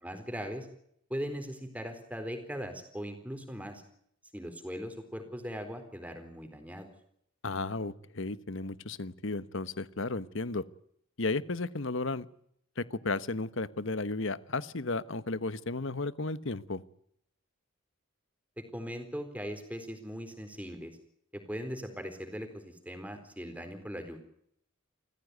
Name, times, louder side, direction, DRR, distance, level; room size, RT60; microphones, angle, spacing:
voice 1, 0.0-0.7 1.1-3.8 4.3-6.9 18.6-21.0 21.3-24.2, equal, 5° right, 7 dB, 3.9 m, -39 dB
voice 2, 7.4-10.6 11.2-12.3 12.8-16.8, left 3 dB, 60° left, 15 dB, 1.1 m, -34 dB
29.0 x 15.0 x 9.4 m, 0.71 s
head